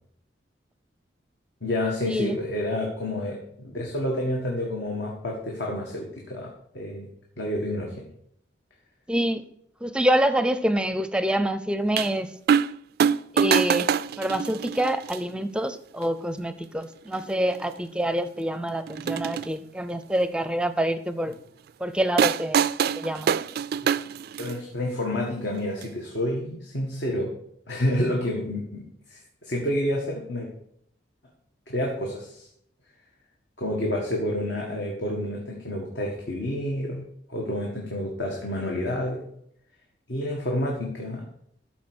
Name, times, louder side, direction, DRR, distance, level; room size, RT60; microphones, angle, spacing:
voice 1, 1.6-7.1 7.4-8.0 24.4-27.3 27.7-30.5 31.7-32.5 33.6-37.0 37.3-39.2 40.1-41.2, left 1 dB, 70° left, -1 dB, 1.7 m, -29 dB
voice 2, 9.1-9.5 9.8-12.3 13.3-21.3 21.8-22.6 23.0-23.3, right 1 dB, 5° right, 12 dB, 0.5 m, -26 dB
sound 1, 12.0-12.1 12.5-12.7 13.0-15.2 16.0-16.1 17.1-17.2 17.5-17.6 18.9-19.5 22.2-24.6 25.8-25.9, right 7 dB, 60° right, 0.3 m, -24 dB
13.0 x 4.6 x 6.2 m, 0.70 s
head